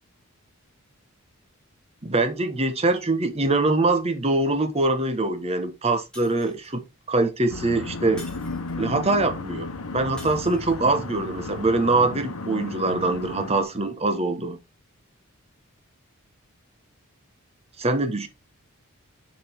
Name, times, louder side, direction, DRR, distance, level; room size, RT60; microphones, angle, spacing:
voice 1, 2.0-6.8 7.1-8.2 8.8-14.6 17.8-18.3, right 2 dB, 30° right, 1.1 m, -23 dB
Shatter, 6.1-6.9 8.2-9.0 10.2-11.0, left 1 dB, 5° left, 2.8 m, -47 dB
sound 1, 7.5-13.6, left 3 dB, 85° left, 1.0 m, -34 dB
7.2 x 5.2 x 3.5 m
head